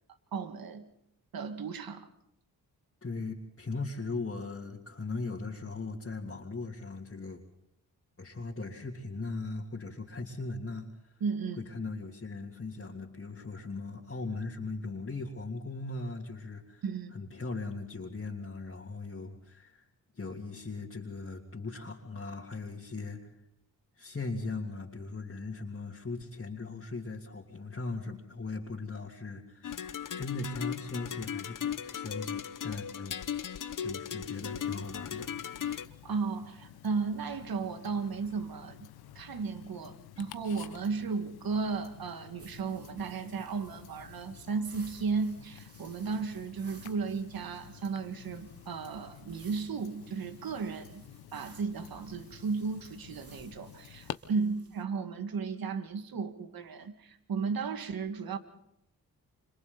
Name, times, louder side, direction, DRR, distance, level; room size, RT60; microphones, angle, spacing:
voice 1, 0.3-0.9 1.3-2.1 11.2-11.6 16.8-17.1 35.6-38.9 39.2-51.0 51.3-58.4, right 5 dB, 70° right, 8 dB, 2.0 m, -35 dB
voice 2, 3.0-7.4 8.2-11.1 11.6-16.8 17.1-19.8 20.1-23.3 24.0-33.2 33.8-35.3, left 3 dB, 35° left, -4 dB, 3.1 m, -39 dB
sound 1, 29.6-35.9, left 8 dB, 60° left, 1.0 m, -37 dB
Tick-tock, 34.3-54.1, left 11 dB, 90° left, 1.0 m, -51 dB
sound 2, 42.4-54.8, right 3 dB, 40° right, 3.0 m, -58 dB
29.5 x 26.0 x 4.1 m, 0.78 s
supercardioid pair, 50°, 37 cm